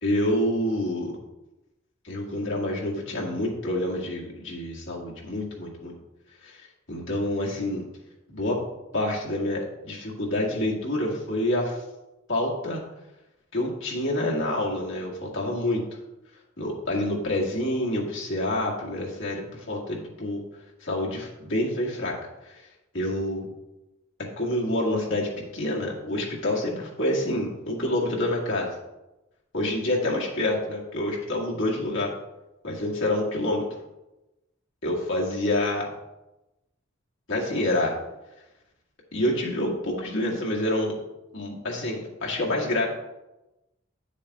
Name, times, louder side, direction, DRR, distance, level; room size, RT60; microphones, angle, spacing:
voice 1, 0.0-1.1 2.0-5.9 6.4-7.8 8.3-8.6 8.9-11.8 12.3-12.8 13.5-15.8 16.6-20.4 20.8-22.1 22.4-22.7 22.9-23.5 24.4-28.7 29.5-32.1 32.6-33.7 34.8-35.9 37.3-38.0 39.1-41.0 41.3-42.9, left 1 dB, 70° left, -3 dB, 1.8 m, -27 dB
9.3 x 7.0 x 2.4 m, 0.98 s
head